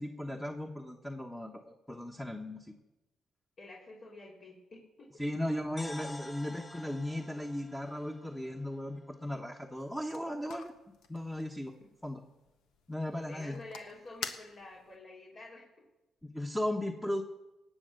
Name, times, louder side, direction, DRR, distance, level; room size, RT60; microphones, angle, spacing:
voice 1, 0.0-2.7 5.2-10.7 11.1-11.7 12.0-12.2 12.9-13.6 16.2-17.2, left 1 dB, 5° left, 2 dB, 1.2 m, -36 dB
voice 2, 3.6-5.2 13.3-15.6, left 2 dB, 55° left, -5 dB, 3.4 m, -49 dB
sound 1, 5.8-9.7, left 1 dB, 25° left, 2.1 m, -50 dB
sound 2, 9.8-15.0, left 6 dB, 85° left, 1.2 m, -48 dB
18.5 x 7.9 x 6.7 m, 0.99 s
cardioid pair, 90°, 0 cm